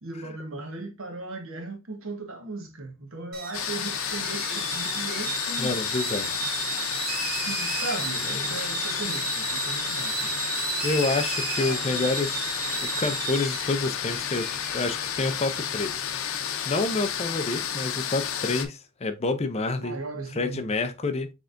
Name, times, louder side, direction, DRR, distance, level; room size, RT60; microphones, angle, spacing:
voice 1, 0.0-5.8 7.5-10.3 11.5-12.0 19.8-20.7, right 2 dB, 75° right, 1.1 m, -37 dB
sound 1, 3.3-15.6, right 5 dB, 45° right, 0.9 m, -34 dB
sound 2, 3.5-18.7, left 8 dB, 80° left, 0.7 m, -31 dB
voice 2, 5.6-6.3 8.3-8.6 10.8-12.5 12.8-14.5 14.7-15.9 16.7-20.0 20.4-21.3, left 3 dB, 30° left, 0.5 m, -28 dB
6.3 x 3.3 x 2.5 m
head